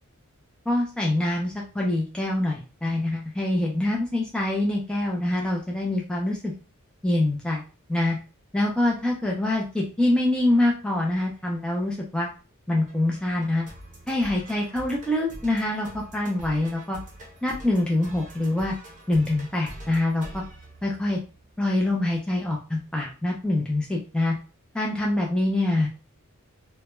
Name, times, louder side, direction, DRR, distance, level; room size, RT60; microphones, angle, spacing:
voice 1, 0.7-6.5 7.0-7.6 7.9-8.2 8.5-12.3 12.7-13.7 14.1-17.0 17.4-18.7 19.1-20.4 20.8-21.2 21.6-24.3 24.7-25.9, left 1 dB, 5° left, -2 dB, 0.3 m, -25 dB
sound 1, 12.9-21.5, right 1 dB, 35° right, 0.7 m, -45 dB
2.1 x 2.1 x 2.9 m, 0.34 s
head